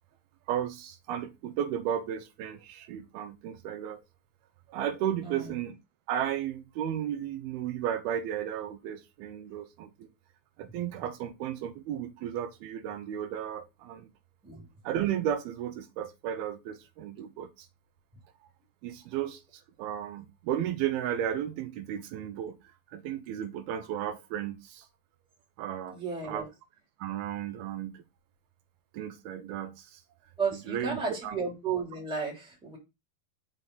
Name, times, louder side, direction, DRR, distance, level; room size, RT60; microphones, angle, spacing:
voice 1, 0.5-4.0 4.7-5.8 6.1-10.1 10.6-14.1 14.8-17.5 18.8-19.4 19.8-22.6 22.9-24.9 25.6-26.0 26.2-26.5 27.0-28.0 28.9-30.0 30.5-31.4, right 10 dB, 85° right, 2.7 m, -34 dB
voice 2, 25.9-26.5 30.4-32.8, right 5 dB, ahead, 1.9 m, -33 dB
5.8 x 5.5 x 3.8 m
omnidirectional pair, 4.4 m